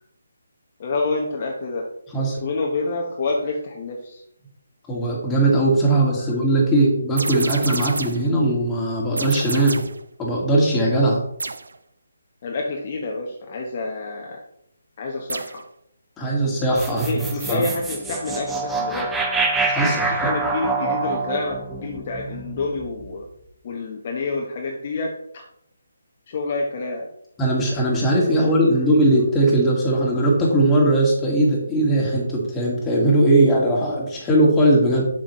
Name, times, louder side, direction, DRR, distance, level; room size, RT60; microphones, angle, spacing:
voice 1, 0.8-1.9 2.2-4.2 6.2-6.4 12.4-14.4 15.0-15.6 16.9-19.2 19.8-23.3 23.6-25.4 26.3-27.1 28.4-28.8, left 3 dB, 40° left, 0 dB, 1.0 m, -28 dB
voice 2, 4.9-9.8 10.2-11.2 16.2-17.2 17.5-17.7 19.6-20.1 27.4-35.1, right 1 dB, 10° left, -4 dB, 2.1 m, -19 dB
sound 1, 7.2-8.3 9.2-10.0 11.4-11.8 15.3-15.7, right 3 dB, 75° right, 0.6 m, -29 dB
sound 2, 16.8-23.1, right 3 dB, 5° right, 0.6 m, -26 dB
7.3 x 6.3 x 3.1 m, 0.74 s
figure-of-eight pair, 155°, 0 cm